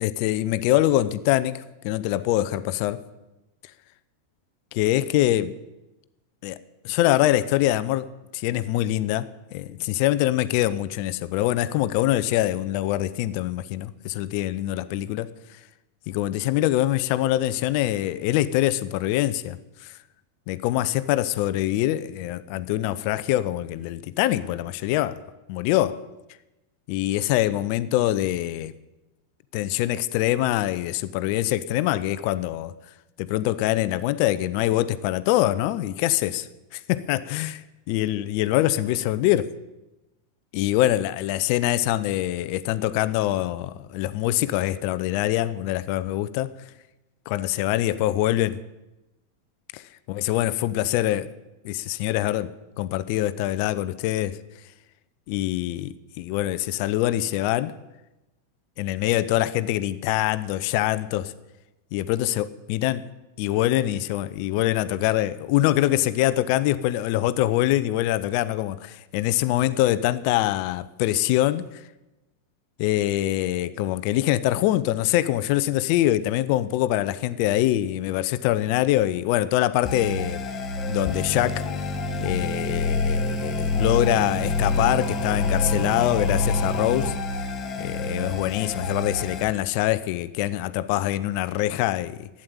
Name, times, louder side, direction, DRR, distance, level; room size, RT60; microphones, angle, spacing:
voice 1, 0.0-3.0 4.8-5.5 6.4-6.6 6.8-8.1 8.3-15.3 16.1-19.9 20.5-25.2 25.5-26.0 26.9-28.7 29.5-32.7 33.2-36.5 36.7-37.6 37.9-39.5 40.5-46.5 47.3-48.6 49.7-49.8 50.1-51.3 51.6-54.4 55.3-57.7 58.8-61.3 61.9-63.1 63.4-71.6 72.8-80.4 80.9-81.7 82.2-87.1 87.8-92.3, left 14 dB, 45° left, 0.7 m, -24 dB
sound 1, 79.8-89.4, left 3 dB, 30° left, 2.4 m, -27 dB
12.0 x 8.9 x 9.3 m
figure-of-eight pair, 90°, 0 cm